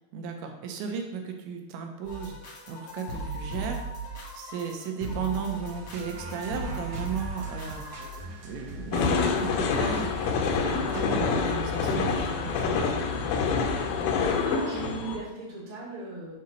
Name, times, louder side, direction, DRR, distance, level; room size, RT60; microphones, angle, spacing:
voice 1, 0.1-2.4 2.7-3.8 4.3-7.8 8.4-10.1 10.7-13.0, right 6 dB, 85° right, 3 dB, 3.1 m, -35 dB
sound 1, 2.1-8.2, right 2 dB, 55° left, 1.5 m, -37 dB
sound 2, 5.6-11.3, equal, 65° right, 2.6 m, -41 dB
sound 3, 8.9-15.2, left 5 dB, 80° left, 2.7 m, -27 dB
voice 2, 14.2-16.3, right 3 dB, 35° right, -6 dB, 1.3 m, -37 dB
7.9 x 2.9 x 6.2 m, 0.99 s
omnidirectional pair, 5.1 m